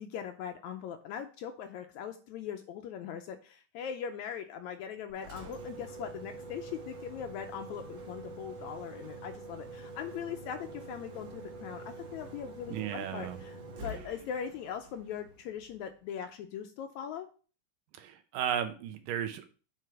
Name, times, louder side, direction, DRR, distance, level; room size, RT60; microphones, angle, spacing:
voice 1, 0.0-17.3, left 8 dB, 80° left, 6 dB, 1.8 m, -40 dB
Engine, 5.1-16.0, right 2 dB, 65° right, 1.1 m, -46 dB
voice 2, 12.7-13.4 18.0-19.5, right 9 dB, 85° right, 9 dB, 2.5 m, -34 dB
7.7 x 4.8 x 4.7 m, 0.38 s
omnidirectional pair, 3.8 m